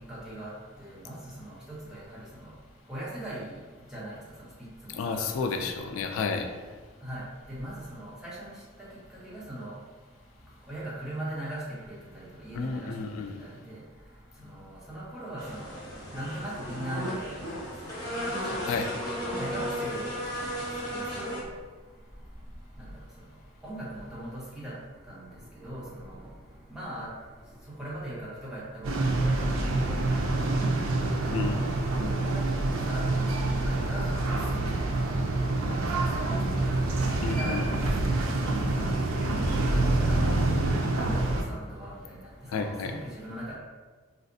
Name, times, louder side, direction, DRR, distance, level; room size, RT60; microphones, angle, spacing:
voice 1, 0.1-0.5 0.8-1.5 1.9-2.5 2.9-3.4 3.9-4.1 4.8-5.3 7.0-7.2 7.6-8.5 9.2-9.7 10.7-11.6 11.9-12.9 13.7-13.8 14.6-15.7 16.1-17.4 18.5-18.7 19.4-20.5 20.9-21.5 23.6-24.7 25.1-25.3 25.6-26.3 26.7-27.1 27.8-30.2 30.5-30.9 31.3-31.6 32.3-35.0 35.3-35.4 35.7-35.8 36.2-36.3 36.5-36.7 37.2-38.2 38.5-38.8 39.1-40.2 40.9-42.2 42.5-43.6, right 1 dB, 5° right, -8 dB, 0.9 m, -39 dB
voice 2, 4.9-6.5 12.5-13.4 18.6-18.9 31.3-31.6 37.2-37.7 42.5-43.0, left 4 dB, 75° left, 5 dB, 0.3 m, -31 dB
sound 1, 15.4-21.4, equal, 20° left, 1.1 m, -34 dB
sound 2, 28.8-41.4, right 2 dB, 75° right, 0.4 m, -27 dB
4.2 x 2.4 x 2.6 m, 1.4 s
head